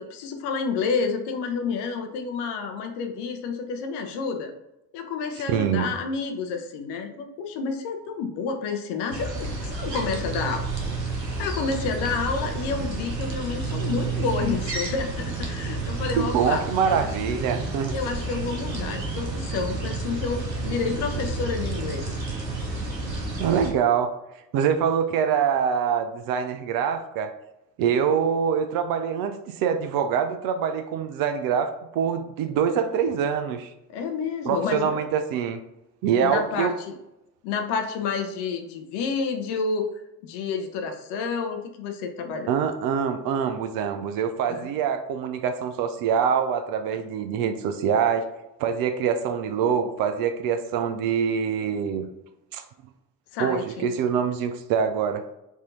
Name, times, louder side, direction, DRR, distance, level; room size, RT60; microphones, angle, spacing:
voice 1, 0.0-4.5 4.9-10.7 11.4-17.1 17.9-22.1 33.9-35.0 36.1-37.0 37.4-39.9 40.2-42.5 44.5-44.7 53.3-53.9, left 5 dB, 55° left, 5 dB, 0.8 m, -29 dB
voice 2, 5.5-5.9 16.2-17.9 23.4-24.1 24.5-27.3 27.8-33.7 34.4-35.6 36.0-36.7 42.5-48.3 48.6-52.1 52.5-52.6 53.4-55.2, right 7 dB, 45° right, 7 dB, 0.5 m, -24 dB
sound 1, 9.1-23.7, right 3 dB, 90° right, 0.8 m, -30 dB
4.7 x 2.8 x 3.7 m, 0.91 s
figure-of-eight pair, 55°, 49 cm